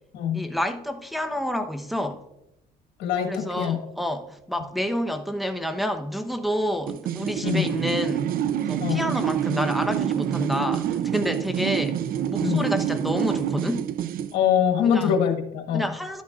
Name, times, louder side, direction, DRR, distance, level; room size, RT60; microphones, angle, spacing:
voice 1, 0.3-2.3 3.3-8.3 8.7-13.9 14.8-15.1 15.7-16.2, equal, ahead, 0.9 m, -29 dB
voice 2, 3.0-3.8 7.4-7.7 8.8-9.1 12.4-12.7 14.3-15.8, left 8 dB, 85° left, 1.5 m, -23 dB
sound 1, 6.9-14.4, right 9 dB, 60° right, 0.5 m, -27 dB
12.0 x 10.0 x 2.4 m
cardioid pair, 110°, 17 cm